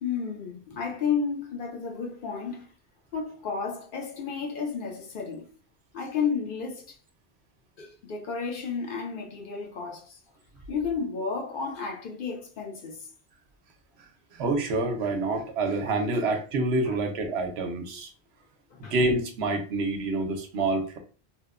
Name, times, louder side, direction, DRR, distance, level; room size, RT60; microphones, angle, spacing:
voice 1, 0.0-2.7 3.1-5.5 5.9-7.0 7.8-10.2 10.7-13.1 16.9-17.0 18.7-18.9, left 6 dB, 60° left, 0.7 m, -32 dB
voice 2, 14.3-18.1 18.9-21.0, right 2 dB, 80° right, 0.8 m, -27 dB
2.8 x 2.1 x 2.3 m
omnidirectional pair, 1.1 m